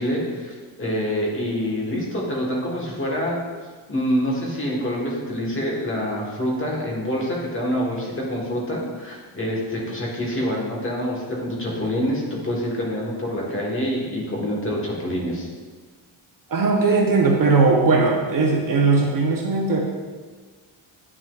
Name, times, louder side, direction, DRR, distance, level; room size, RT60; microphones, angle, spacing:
voice 1, 0.0-3.4 3.9-15.5, equal, 25° left, -3 dB, 1.2 m, -26 dB
voice 2, 16.5-19.8, right 4 dB, 45° right, 0 dB, 0.7 m, -19 dB
9.2 x 6.2 x 2.3 m, 1.5 s
wide cardioid pair, 170°, 49 cm